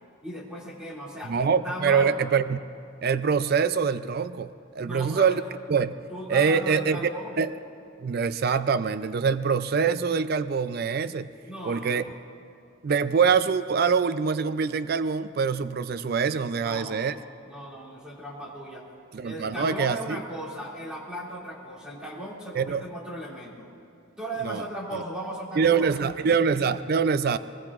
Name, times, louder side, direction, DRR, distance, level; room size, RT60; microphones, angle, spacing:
voice 1, 0.2-1.3 1.6-2.2 4.8-5.4 6.1-7.4 11.4-12.1 16.6-18.9 19.2-23.7 24.2-25.9, right 1 dB, 5° right, -5 dB, 2.4 m, -37 dB
voice 2, 1.3-2.6 3.0-5.4 5.7-5.9 6.3-7.1 7.4-7.6 8.0-11.3 11.7-12.0 12.8-17.1 19.1-20.2 22.5-22.8 24.4-24.6 25.6-27.4, right 6 dB, 45° right, 13 dB, 0.4 m, -24 dB
23.0 x 20.5 x 2.5 m, 2.5 s
head